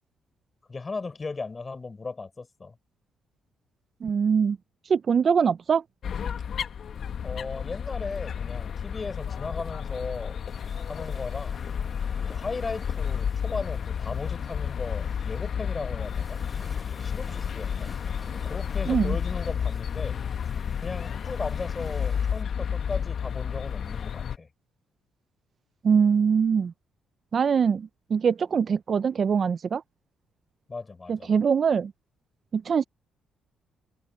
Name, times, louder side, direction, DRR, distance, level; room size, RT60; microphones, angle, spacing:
voice 1, 0.7-2.8 7.2-10.4 10.9-11.6 12.2-16.4 16.9-17.9 18.4-20.2 20.8-24.5 30.7-31.3, left 4 dB, 30° left, 4.4 m, -36 dB
voice 2, 4.0-4.6 4.9-5.8 18.9-19.2 25.8-26.7 27.3-29.8 31.1-31.9 32.5-32.8, right 6 dB, 45° right, 0.5 m, -23 dB
sound 1, 6.0-24.4, left 7 dB, 55° left, 1.3 m, -31 dB
sound 2, 10.5-22.4, equal, 5° left, 6.0 m, -51 dB
cardioid pair, 90°, 0 cm